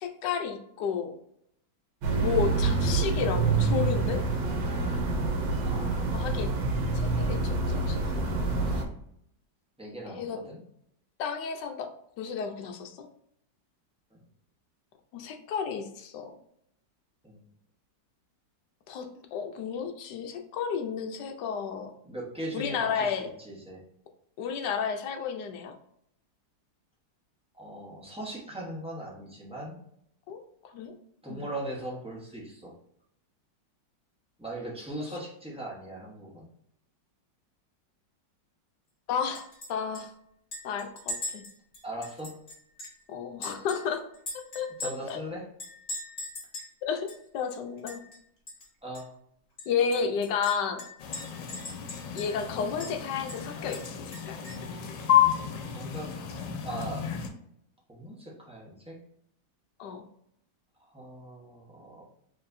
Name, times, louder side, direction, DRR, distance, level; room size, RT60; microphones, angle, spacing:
voice 1, 0.0-1.1 2.2-4.2 6.1-6.6 6.9-8.8 10.1-10.4 11.2-11.9 12.2-13.1 15.1-16.4 18.9-21.9 22.5-23.3 24.4-25.8 30.3-30.4 30.7-30.9 31.3-31.4 39.1-40.1 40.6-41.5 43.1-44.0 44.5-45.2 46.8-48.0 49.7-50.9 52.1-54.4 59.8-60.1, left 6 dB, 75° left, 5 dB, 1.2 m, -32 dB
sound 1, 2.0-8.8, right 3 dB, 85° right, 1.5 m, -27 dB
voice 2, 5.6-6.3 9.8-10.6 14.1-14.2 17.2-17.4 22.0-23.8 27.6-29.8 31.2-32.8 34.4-36.5 41.8-42.4 44.8-45.5 48.8-49.1 55.7-56.2 56.6-57.1 57.9-59.0 60.9-62.0, right 1 dB, 5° right, -4 dB, 0.6 m, -39 dB
Chink clink, 39.3-39.7 39.9-40.0 40.5-43.0 43.4-45.2 45.6-46.7 47.1-47.2 47.5-48.2 48.5-48.7 48.9-49.0 49.6-52.5 52.8-52.9 53.3-54.7, left 1 dB, 45° left, 2.0 m, -40 dB
sound 2, 51.0-57.3, left 10 dB, 90° left, 1.3 m, -30 dB
4.7 x 3.2 x 2.6 m, 0.71 s
omnidirectional pair, 2.0 m